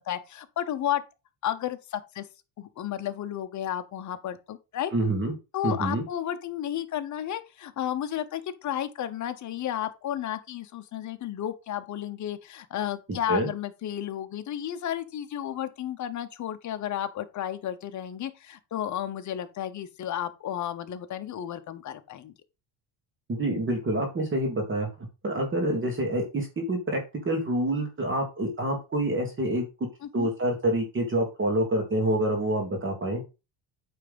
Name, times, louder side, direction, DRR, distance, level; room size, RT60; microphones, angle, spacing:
voice 1, 0.1-1.0 1.4-2.3 2.6-4.9 5.5-22.3 30.0-30.3, left 11 dB, 35° left, 0.9 m, -32 dB
voice 2, 4.9-5.3 5.6-6.0 13.3-13.5 23.3-24.9 25.2-27.0 27.2-29.6 30.1-33.2, right 1 dB, 25° right, 1.8 m, -27 dB
8.9 x 3.5 x 5.2 m
cardioid pair, 145°, 49 cm